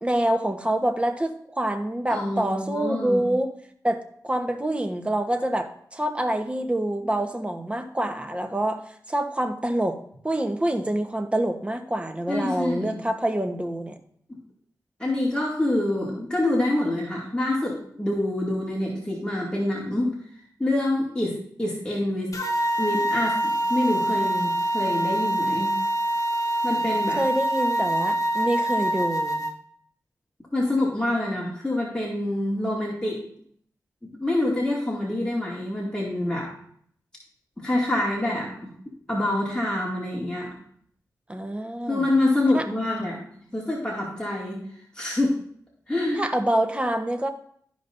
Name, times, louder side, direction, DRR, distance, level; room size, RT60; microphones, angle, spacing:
voice 1, 0.0-3.5 3.8-8.8 9.1-10.0 10.2-14.0 27.2-29.5 41.3-42.1 42.5-42.6 46.2-47.3, right 1 dB, 15° right, 6 dB, 1.1 m, -26 dB
voice 2, 2.1-3.2 12.3-13.0 15.0-20.1 20.6-22.3 22.8-25.7 26.6-27.2 30.5-33.2 34.2-36.5 37.6-38.7 39.1-40.5 41.9-43.2 43.5-44.6 44.9-45.4 45.9-46.2, left 1 dB, 15° left, -4 dB, 2.3 m, -26 dB
sound 1, 22.3-29.5, right 1 dB, 50° left, 1.3 m, -25 dB
13.0 x 5.2 x 2.6 m, 0.63 s
cardioid pair, 50°, 7 cm